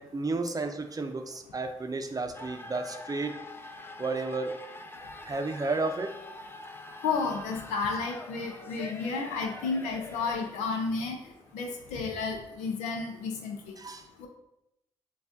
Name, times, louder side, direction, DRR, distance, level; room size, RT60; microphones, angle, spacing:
voice 1, 0.0-3.4 4.0-4.6 5.3-6.2 13.8-14.1, right 3 dB, 30° right, 6 dB, 0.6 m, -32 dB
sound 1, 2.3-13.2, left 2 dB, 20° left, 0.5 m, -46 dB
voice 2, 7.0-13.8 14.2-14.3, left 4 dB, 90° left, 3 dB, 0.6 m, -32 dB
6.9 x 2.4 x 2.6 m, 0.85 s
supercardioid pair, 45°, 12 cm